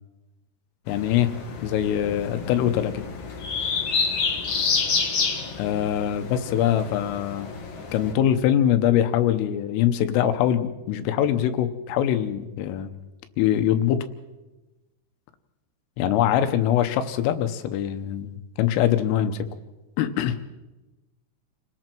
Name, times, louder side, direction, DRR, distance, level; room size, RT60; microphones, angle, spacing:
voice 1, 0.9-1.4 1.6-3.1 5.6-7.5 7.9-12.9 13.4-14.1 16.0-19.5 20.0-20.4, left 10 dB, 85° left, 10 dB, 3.6 m, -23 dB
sound 1, 0.9-8.1, left 5 dB, 65° left, 1.4 m, -29 dB
29.5 x 19.5 x 4.6 m, 1.1 s
omnidirectional pair, 5.7 m